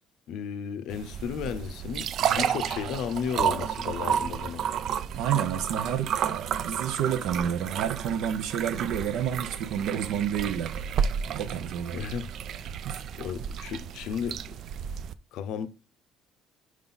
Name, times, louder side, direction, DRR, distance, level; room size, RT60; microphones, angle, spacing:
voice 1, 0.3-4.6 11.9-12.3 13.2-14.4 15.3-15.7, left 8 dB, 65° left, 0.6 m, -34 dB
sound 1, 0.9-15.1, right 8 dB, 45° right, 0.3 m, -31 dB
voice 2, 5.1-10.8 11.3-12.0 12.8-13.0, right 9 dB, 70° right, 0.8 m, -30 dB
5.5 x 4.9 x 4.0 m
cardioid pair, 175°, 0 cm